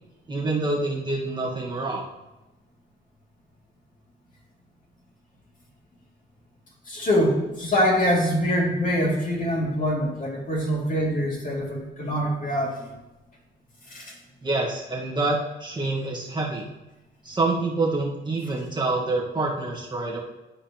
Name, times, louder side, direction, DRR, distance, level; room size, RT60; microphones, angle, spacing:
voice 1, 0.3-2.0 14.4-16.6 17.2-20.2, right 2 dB, 20° right, -4 dB, 1.7 m, -26 dB
voice 2, 6.9-12.9 13.9-14.1, equal, 40° left, -3 dB, 2.7 m, -24 dB
11.5 x 4.9 x 3.0 m, 1.0 s
cardioid pair, 90°, 20 cm